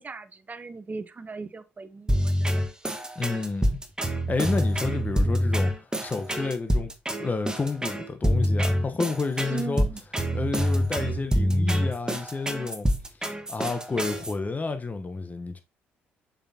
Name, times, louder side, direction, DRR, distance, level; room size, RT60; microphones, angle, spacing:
voice 1, 0.0-2.6 9.5-10.0, right 4 dB, 30° right, 0.8 m, -38 dB
sound 1, 2.1-14.3, equal, 15° right, 1.4 m, -26 dB
voice 2, 3.2-3.8 4.3-5.7 6.0-6.9 7.2-9.9 10.3-12.9 13.5-15.6, left 4 dB, 30° left, 1.0 m, -30 dB
6.9 x 5.7 x 2.8 m
hypercardioid pair, 50°, 6 cm